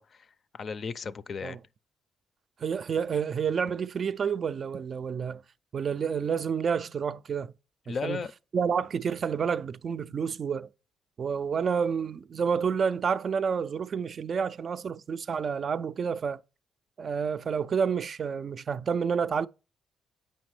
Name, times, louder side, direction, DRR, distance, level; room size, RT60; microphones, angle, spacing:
voice 1, 0.0-1.6 7.9-8.3, left 5 dB, 50° left, 0.4 m, -36 dB
voice 2, 2.6-5.4 5.7-7.5 7.9-8.2 8.5-10.7 11.2-16.4 17.0-19.5, right 6 dB, 50° right, 0.3 m, -29 dB
8.0 x 5.2 x 3.1 m
cardioid pair, 90°, 0 cm